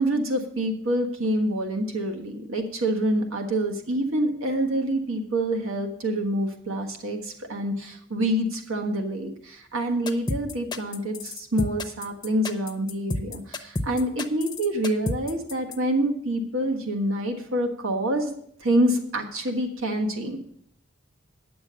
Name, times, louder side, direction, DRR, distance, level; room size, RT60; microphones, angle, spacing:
voice 1, 0.0-18.3 18.6-20.4, right 1 dB, 85° right, 2 dB, 1.5 m, -26 dB
sound 1, 10.1-15.8, left 2 dB, 20° left, 0.6 m, -30 dB
9.8 x 6.9 x 6.8 m, 0.67 s
head